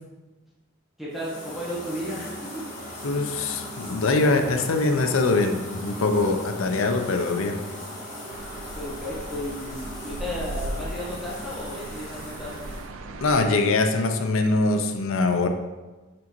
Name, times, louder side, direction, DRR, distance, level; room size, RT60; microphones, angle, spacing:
voice 1, 1.0-2.6 8.7-12.7, equal, ahead, -8 dB, 1.3 m, -34 dB
sound 1, 1.1-12.9, left 1 dB, 35° left, 1.6 m, -38 dB
voice 2, 3.0-7.6 13.2-15.5, left 3 dB, 85° left, 6 dB, 0.6 m, -23 dB
sound 2, 8.3-13.4, right 2 dB, 85° right, 0.5 m, -38 dB
6.0 x 5.2 x 3.0 m, 1.2 s
head